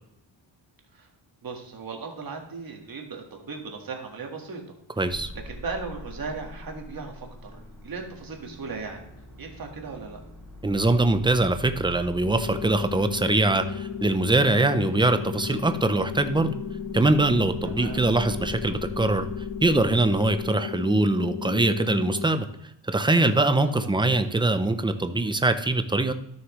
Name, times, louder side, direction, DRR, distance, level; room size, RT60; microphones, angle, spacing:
voice 1, 1.4-4.6 5.4-9.0 9.4-10.2 17.6-18.0 23.8-23.9, right 4 dB, 50° right, 2 dB, 1.6 m, -37 dB
sound 1, 5.0-20.4, left 1 dB, 5° left, 2.7 m, -43 dB
voice 2, 5.0-5.3 10.6-16.5 16.9-19.3 19.6-22.5 22.8-26.1, right 2 dB, 10° right, 9 dB, 0.4 m, -23 dB
sound 2, 12.2-22.2, left 8 dB, 70° left, 0.7 m, -35 dB
13.0 x 6.4 x 3.0 m, 0.80 s
wide cardioid pair, 175°, 46 cm